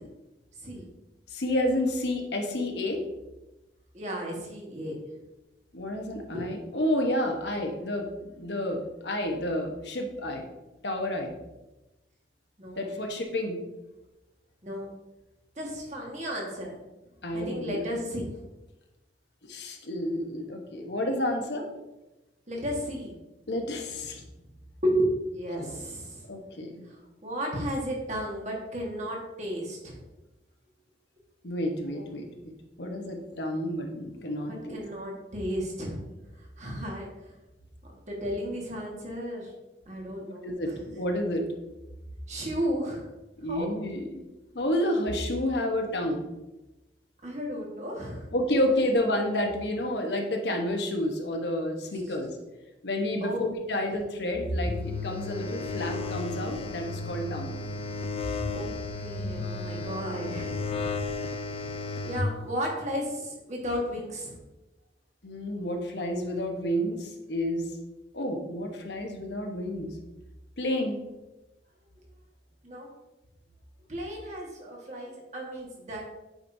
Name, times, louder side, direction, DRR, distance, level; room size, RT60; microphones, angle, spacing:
voice 1, 1.3-3.0 5.7-10.4 10.8-11.3 12.8-13.6 17.2-17.8 19.5-21.7 23.5-24.2 26.3-26.8 31.4-32.5 32.8-34.8 40.4-41.5 43.4-44.1 44.5-46.2 48.3-52.3 52.8-57.5 65.2-67.7 68.1-70.0 70.6-71.0, left 1 dB, 70° left, 3 dB, 1.1 m, -30 dB
voice 2, 3.9-4.9 6.3-6.4 12.6-13.0 14.6-14.9 15.6-16.7 17.3-18.3 22.5-23.2 24.8-26.3 26.9-30.0 31.9-32.0 34.4-36.0 36.4-37.3 38.1-39.5 39.9-40.8 42.3-43.0 43.5-43.7 47.2-48.3 53.2-53.5 58.5-58.7 59.0-60.5 62.0-64.4 72.6-72.9 73.9-76.0, equal, 40° right, -1 dB, 1.6 m, -33 dB
sound 1, 54.7-62.3, left 3 dB, 30° left, 0.4 m, -33 dB
9.0 x 5.1 x 2.7 m, 1.0 s
head